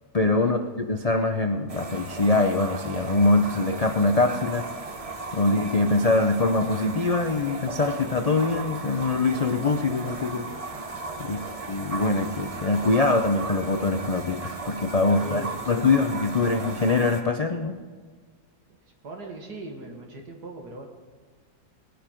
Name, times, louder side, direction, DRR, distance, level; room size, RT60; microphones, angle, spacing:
voice 1, 0.1-4.6 5.3-10.5 11.2-11.4 11.7-17.8, left 3 dB, 75° left, 6 dB, 0.3 m, -23 dB
sound 1, 1.7-17.2, right 3 dB, 30° right, 0.8 m, -36 dB
voice 2, 15.2-15.7 19.0-20.9, right 2 dB, 75° right, 2 dB, 2.5 m, -40 dB
19.5 x 10.5 x 4.5 m, 1.6 s
omnidirectional pair, 1.7 m